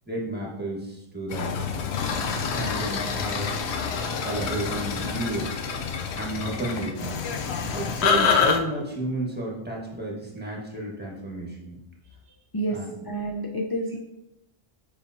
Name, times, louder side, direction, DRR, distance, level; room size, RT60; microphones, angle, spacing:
voice 1, 0.1-1.5 2.5-3.6 4.2-5.5 6.1-7.2 7.7-11.8 12.7-12.9, right 1 dB, 10° right, -3 dB, 1.3 m, -32 dB
sound 1, 1.3-8.6, left 6 dB, 85° left, 0.9 m, -27 dB
voice 2, 12.5-14.0, right 1 dB, 35° left, 0 dB, 0.4 m, -29 dB
7.1 x 5.0 x 2.7 m, 0.89 s
omnidirectional pair, 1.1 m